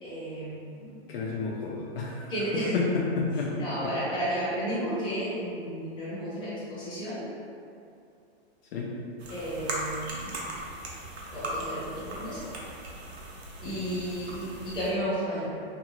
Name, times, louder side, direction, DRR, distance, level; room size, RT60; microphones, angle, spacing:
voice 1, 0.0-0.9 2.3-2.8 3.6-7.3 9.3-10.3 11.3-12.5 13.6-15.6, equal, 15° left, -11 dB, 0.9 m, -32 dB
voice 2, 1.1-2.3 2.7-3.9 8.7-8.9 13.6-13.8, left 4 dB, 65° left, -3 dB, 0.5 m, -30 dB
sound 1, 9.2-14.9, right 1 dB, 75° right, 0.7 m, -38 dB
2.6 x 2.3 x 2.9 m, 2.5 s
hypercardioid pair, 140°, 32 cm